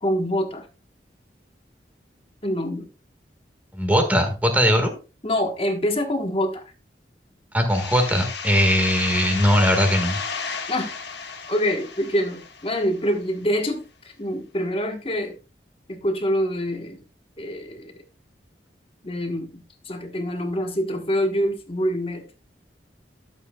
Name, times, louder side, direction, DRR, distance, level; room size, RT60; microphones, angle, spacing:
voice 1, 0.0-0.7 2.4-2.9 5.2-6.6 10.7-10.9 11.5-15.4 15.9-17.0 17.4-17.9 19.0-22.3, equal, 30° left, 1.2 m, -25 dB
voice 2, 3.7-4.9 7.5-10.2, equal, 10° right, 1.6 m, -20 dB
sound 1, 7.7-13.2, left 5 dB, 75° left, 1.3 m, -33 dB
11.5 x 7.5 x 2.3 m
head